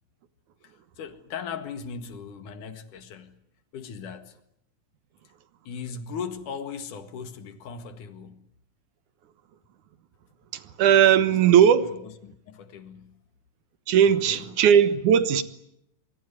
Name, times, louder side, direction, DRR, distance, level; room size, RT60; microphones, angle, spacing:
voice 1, 0.6-3.4 3.7-4.4 5.6-8.4 11.3-12.4 12.7-13.2 14.0-14.6, left 6 dB, 80° left, 3.3 m, -38 dB
voice 2, 10.5-11.9 13.9-15.4, right 9 dB, 75° right, 2.7 m, -18 dB
24.5 x 23.0 x 9.8 m
omnidirectional pair, 3.6 m